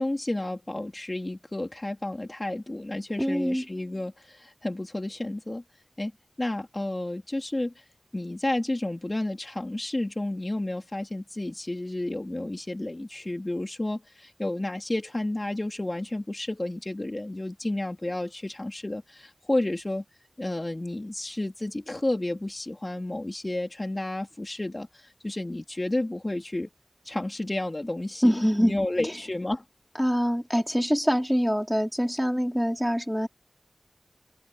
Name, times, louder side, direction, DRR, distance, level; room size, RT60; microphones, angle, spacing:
voice 1, 0.0-5.6 6.0-6.1 6.4-7.8 8.1-20.0 20.4-26.7 27.0-29.6, left 1 dB, 35° left, 3.7 m, -31 dB
voice 2, 3.2-3.6 28.2-28.8 30.0-33.3, equal, ahead, 4.5 m, -24 dB
wide cardioid pair, 45°, 0 cm